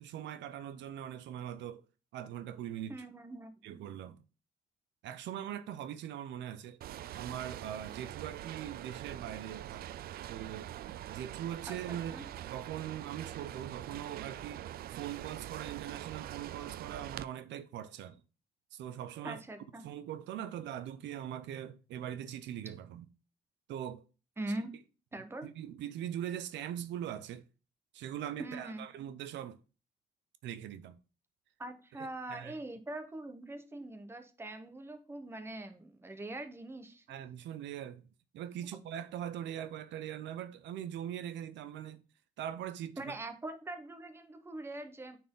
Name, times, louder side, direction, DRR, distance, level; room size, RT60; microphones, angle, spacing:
voice 1, 0.0-1.8 2.1-2.9 3.6-4.2 5.0-6.8 7.1-9.9 10.3-18.2 18.7-19.4 19.8-23.1 23.7-24.0 25.4-27.4 27.9-29.6 30.4-31.0 32.0-32.6 37.1-38.1 38.3-42.0 42.4-43.2, right 10 dB, 85° right, 0.7 m, -41 dB
voice 2, 2.9-3.5 11.7-12.2 19.2-19.8 24.4-24.7 25.1-25.5 28.4-28.8 31.6-37.2 43.0-45.2, right 2 dB, 15° right, 1.0 m, -42 dB
sound 1, 6.8-17.3, right 12 dB, 60° right, 0.4 m, -44 dB
9.2 x 4.4 x 3.8 m
cardioid pair, 155°, 18 cm